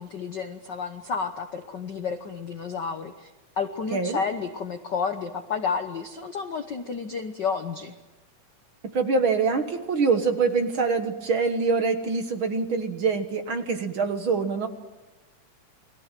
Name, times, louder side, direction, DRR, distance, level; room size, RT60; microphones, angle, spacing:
voice 1, 0.0-3.3 3.6-7.9, left 5 dB, 60° left, 7 dB, 1.1 m, -31 dB
voice 2, 8.9-14.7, right 4 dB, 50° right, 7 dB, 1.9 m, -24 dB
29.5 x 21.5 x 7.6 m, 1.1 s
omnidirectional pair, 3.4 m